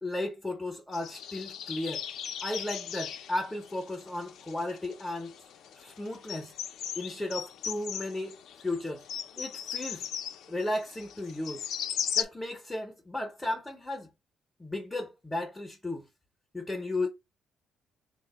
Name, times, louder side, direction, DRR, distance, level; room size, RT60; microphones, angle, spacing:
voice 1, 0.0-2.1 2.4-5.3 5.8-6.5 7.0-9.0 9.4-10.1 10.5-11.7 12.2-14.1 14.6-16.1 16.5-17.1, left 1 dB, 10° left, 0.5 m, -35 dB
sound 1, 0.9-12.2, left 9 dB, 70° left, 0.4 m, -38 dB
3.7 x 2.1 x 3.9 m
cardioid pair, 160°, 0 cm